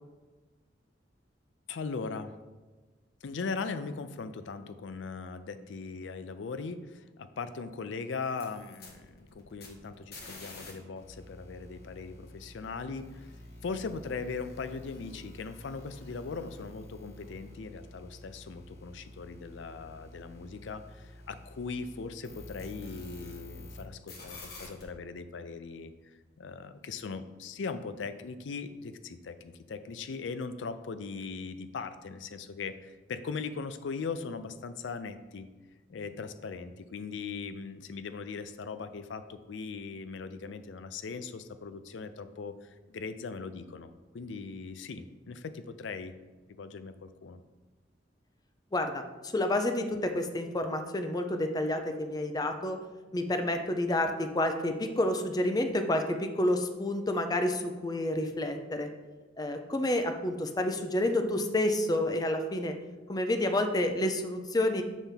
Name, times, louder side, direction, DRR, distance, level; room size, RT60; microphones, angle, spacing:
voice 1, 1.7-2.3 3.2-13.3 13.6-35.5 35.9-46.1 46.5-47.4, left 4 dB, 80° left, 11 dB, 0.4 m, -39 dB
sound 1, 8.2-10.7 11.0-23.8 24.1-24.8, left 2 dB, 55° left, 1.4 m, -49 dB
voice 2, 48.7-52.8 53.1-58.9 59.4-62.8 63.1-64.8, left 1 dB, 20° left, 6 dB, 0.5 m, -29 dB
7.1 x 3.5 x 5.7 m, 1.3 s
head